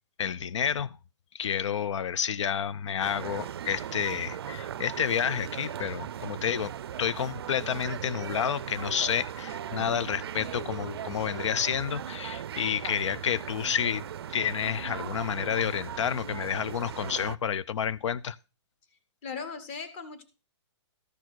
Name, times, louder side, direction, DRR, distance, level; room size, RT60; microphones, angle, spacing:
voice 1, 0.2-1.0 1.3-6.7 7.0-14.0 14.3-18.4, left 8 dB, 90° left, 0.5 m, -30 dB
sound 1, 3.0-17.4, right 9 dB, 55° right, 0.4 m, -38 dB
voice 2, 19.2-20.2, left 5 dB, 25° left, 1.1 m, -38 dB
13.5 x 4.7 x 6.0 m
hypercardioid pair, 175°, 15 cm